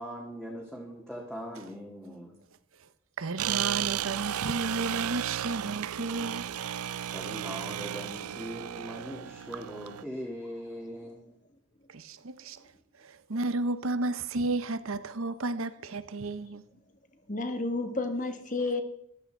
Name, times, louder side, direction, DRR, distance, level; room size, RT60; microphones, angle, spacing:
voice 1, 0.0-2.3 7.1-11.3, equal, 5° left, 1.8 m, -40 dB
voice 2, 3.2-6.5 11.9-12.6 13.0-16.6, right 3 dB, 70° right, 0.8 m, -32 dB
sound 1, 3.4-10.0, right 11 dB, 85° right, 0.5 m, -34 dB
voice 3, 17.3-18.8, left 2 dB, 35° left, 1.5 m, -31 dB
13.5 x 12.5 x 4.5 m
head